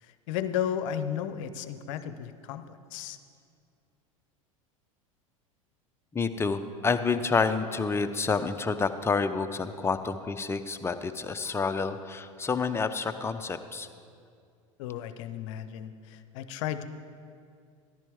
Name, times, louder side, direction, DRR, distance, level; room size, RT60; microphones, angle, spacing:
voice 1, 0.0-3.2 14.8-16.8, left 9 dB, 65° left, 11 dB, 0.7 m, -34 dB
voice 2, 6.1-13.9, left 4 dB, 15° left, 9 dB, 0.6 m, -29 dB
13.5 x 11.0 x 3.6 m, 2.3 s
hypercardioid pair, 85°, 18 cm